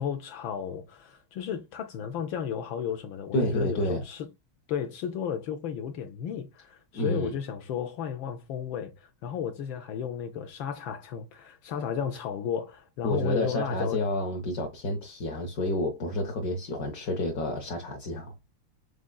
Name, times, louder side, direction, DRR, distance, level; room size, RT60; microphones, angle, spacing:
voice 1, 0.0-4.3 4.7-14.0, left 8 dB, 75° left, 1.3 m, -34 dB
voice 2, 3.3-4.0 6.9-7.4 13.0-18.3, left 1 dB, 60° left, 1.0 m, -29 dB
4.9 x 3.7 x 2.2 m
omnidirectional pair, 2.2 m